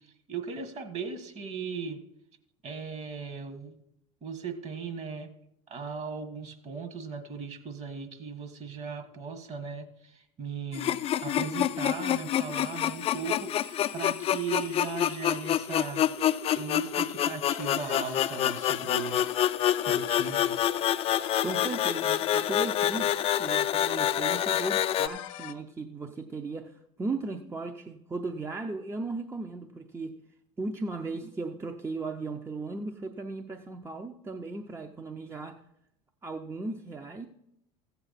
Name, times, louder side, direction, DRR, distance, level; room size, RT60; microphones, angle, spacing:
voice 1, 0.3-2.0 2.6-3.8 4.2-5.3 5.7-10.9 11.2-19.2 19.8-20.6, right 5 dB, 40° right, 8 dB, 1.5 m, -38 dB
sound 1, 10.7-25.1, left 11 dB, 35° left, 0.4 m, -27 dB
sound 2, 17.5-25.5, left 12 dB, 75° left, 0.6 m, -43 dB
voice 2, 21.4-23.1 23.4-30.2 30.6-35.6 36.2-37.3, right 3 dB, 15° right, 5 dB, 0.6 m, -36 dB
14.5 x 8.0 x 4.1 m, 0.79 s
hypercardioid pair, 95°, 17 cm